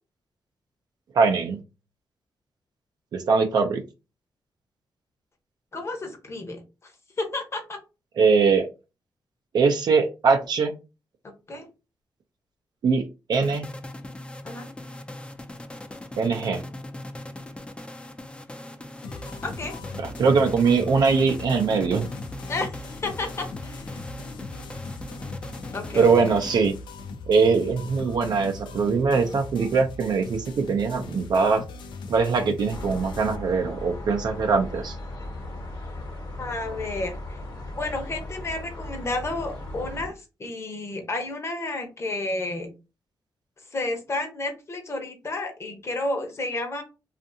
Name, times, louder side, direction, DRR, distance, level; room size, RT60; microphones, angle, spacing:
voice 1, 1.1-1.6 3.1-3.8 8.2-8.6 9.5-10.7 12.8-13.0 13.3-13.6 16.2-16.6 20.0-22.1 26.0-26.7 27.3-31.6 32.1-35.0, right 5 dB, 65° right, 4 dB, 0.4 m, -22 dB
voice 2, 5.7-6.9 7.2-7.8 11.5-11.7 14.4-14.7 19.4-19.7 22.5-23.9 25.7-26.1 36.4-37.4 37.7-42.7 43.7-46.8, left 2 dB, 35° left, 4 dB, 0.8 m, -31 dB
sound 1, 13.3-27.0, left 1 dB, 15° left, 0.4 m, -40 dB
sound 2, 19.0-33.4, left 4 dB, 85° left, 0.4 m, -39 dB
sound 3, 32.7-40.1, left 1 dB, 55° left, 1.1 m, -37 dB
2.6 x 2.4 x 2.6 m, 0.29 s
cardioid pair, 85°, 8 cm